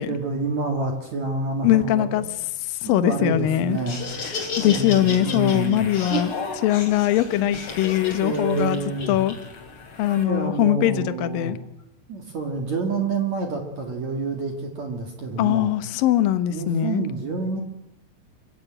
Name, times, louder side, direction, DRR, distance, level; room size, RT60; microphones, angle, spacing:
voice 1, 0.0-2.3 2.9-4.0 4.6-5.9 8.2-9.2 10.2-11.6 12.1-15.7 16.5-17.6, right 3 dB, 50° right, 4 dB, 2.5 m, -28 dB
voice 2, 1.6-2.2 2.8-3.8 4.3-8.8 9.1-9.4 10.0-11.6 15.4-17.0, left 13 dB, 80° left, 10 dB, 2.0 m, -21 dB
Laughter, 3.7-10.2, left 2 dB, 35° left, 3.1 m, -33 dB
24.5 x 15.5 x 8.9 m, 0.89 s
omnidirectional pair, 5.6 m